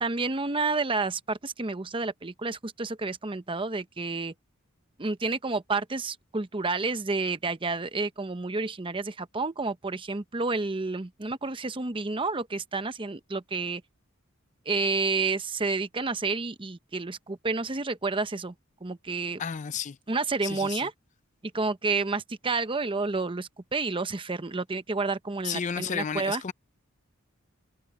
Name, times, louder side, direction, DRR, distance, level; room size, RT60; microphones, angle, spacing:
voice 1, 0.0-4.3 5.0-13.8 14.7-18.5 18.8-19.4 20.1-20.9 21.5-26.5, right 3 dB, 25° right, 0.8 m, -30 dB
voice 2, 19.4-20.0 20.4-20.9 25.4-26.5, left 7 dB, 35° left, 0.4 m, -32 dB
head